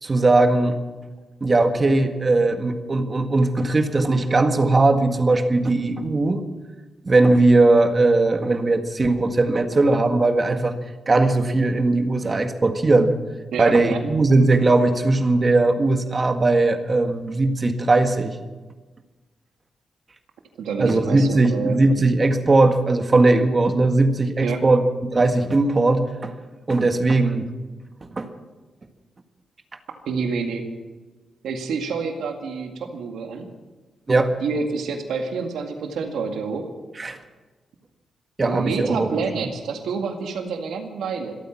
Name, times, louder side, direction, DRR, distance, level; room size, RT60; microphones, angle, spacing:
voice 1, 0.0-0.8 1.4-6.4 7.0-10.8 11.1-13.1 13.6-18.4 20.8-26.3 26.7-27.5 28.1-28.3 34.1-34.3 37.0-37.2 38.4-39.1, right 2 dB, 35° right, 7 dB, 1.7 m, -19 dB
voice 2, 13.5-14.0 20.6-21.8 24.4-24.6 30.1-30.6 31.4-33.5 34.4-36.7 38.4-41.4, right 5 dB, 90° right, 4 dB, 2.0 m, -28 dB
26.0 x 9.2 x 6.1 m, 1.2 s
cardioid pair, 80°, 0 cm